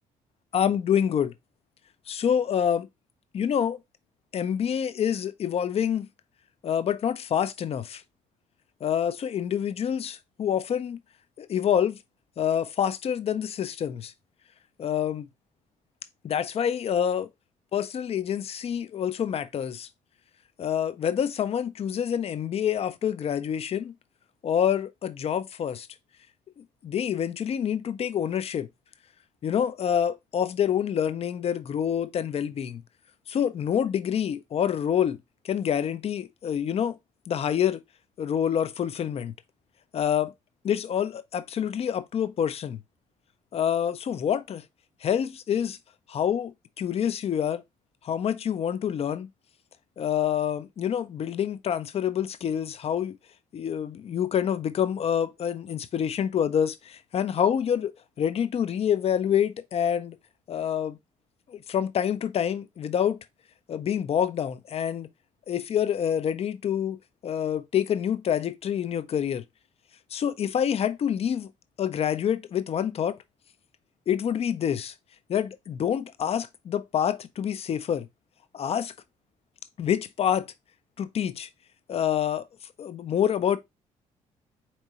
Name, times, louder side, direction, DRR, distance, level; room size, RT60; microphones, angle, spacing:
voice 1, 0.5-1.3 2.1-2.9 3.3-3.8 4.3-6.1 6.6-8.0 8.8-11.0 11.4-12.0 12.4-14.1 14.8-15.3 16.2-17.3 17.7-19.9 20.6-23.9 24.4-25.9 26.8-28.7 29.4-32.8 33.3-35.2 35.4-37.0 37.3-37.8 38.2-39.3 39.9-40.3 40.6-42.8 43.5-44.6 45.0-45.8 46.1-47.6 48.0-49.3 50.0-53.2 53.5-60.2 60.5-61.0 61.5-63.2 63.7-65.1 65.5-69.4 70.1-71.5 71.8-73.2 74.1-74.9 75.3-78.1 78.5-78.9 79.8-80.5 81.0-81.5 81.9-82.5 82.8-83.6, left 9 dB, 35° left, 0.5 m, -27 dB
4.4 x 3.0 x 4.1 m
figure-of-eight pair, 45°, 18 cm